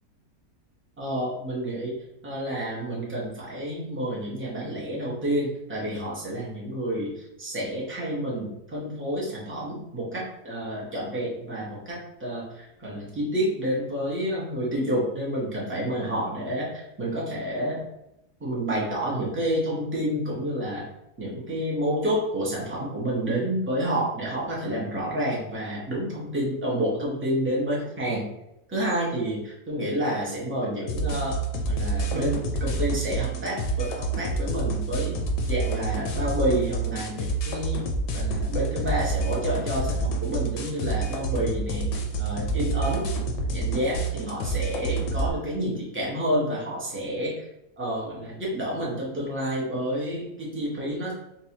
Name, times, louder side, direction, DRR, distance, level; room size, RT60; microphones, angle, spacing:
voice 1, 1.0-2.0 2.2-17.8 18.4-20.8 21.2-28.3 28.7-31.4 31.7-35.2 35.5-41.9 42.2-43.1 43.5-47.5 47.8-51.1, equal, 15° right, -5 dB, 0.4 m, -29 dB
sound 1, 30.9-45.3, right 3 dB, 80° left, 1.2 m, -28 dB
3.9 x 2.3 x 2.8 m, 0.84 s
omnidirectional pair, 1.7 m